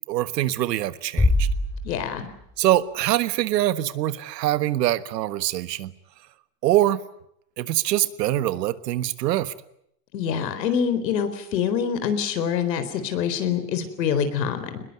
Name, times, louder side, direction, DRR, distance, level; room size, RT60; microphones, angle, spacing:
voice 1, 0.1-1.5 2.6-5.9 6.6-7.0 7.6-9.5, right 14 dB, 80° right, 15 dB, 1.5 m, -24 dB
Bass drum, 1.2-2.6, left 1 dB, 5° left, 2.4 m, -23 dB
voice 2, 1.8-2.3 10.1-14.8, left 7 dB, 90° left, 10 dB, 4.2 m, -25 dB
22.5 x 21.0 x 9.6 m, 0.74 s
supercardioid pair, 150°, 49 cm